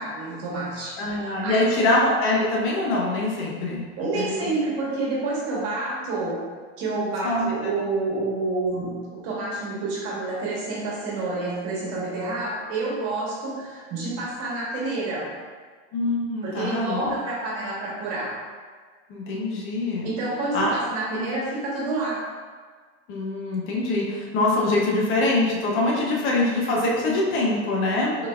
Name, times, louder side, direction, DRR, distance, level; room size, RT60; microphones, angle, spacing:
voice 1, 0.0-1.9 4.0-6.4 6.8-15.3 16.4-18.4 20.0-22.2, right 2 dB, 55° right, -5 dB, 1.3 m, -28 dB
voice 2, 1.0-3.8 4.1-4.5 7.2-7.7 15.9-17.1 19.1-20.1 20.5-20.7 23.1-28.3, left 2 dB, 45° left, -2 dB, 0.7 m, -24 dB
3.8 x 3.3 x 2.4 m, 1.5 s
supercardioid pair, 135°, 29 cm